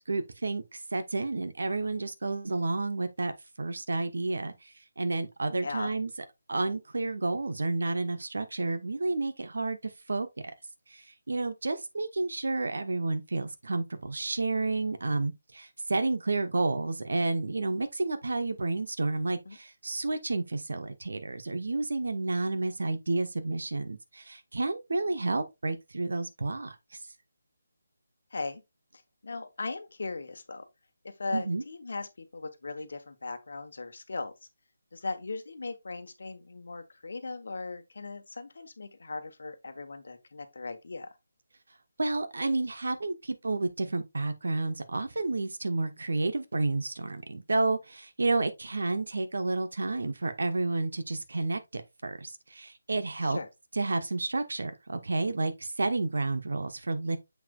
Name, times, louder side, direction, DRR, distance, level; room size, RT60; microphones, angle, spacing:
voice 1, 0.0-3.3 3.6-6.1 6.5-10.5 10.9-26.8 31.3-31.6 42.0-53.4 53.8-57.2, right 3 dB, 60° right, 1.1 m, -31 dB
voice 2, 5.6-5.9 19.4-19.6 28.3-28.6 29.2-30.7 31.0-34.3 34.9-41.2 53.2-53.5, left 3 dB, 55° left, 1.1 m, -38 dB
7.3 x 6.0 x 2.3 m
figure-of-eight pair, 150°, 0 cm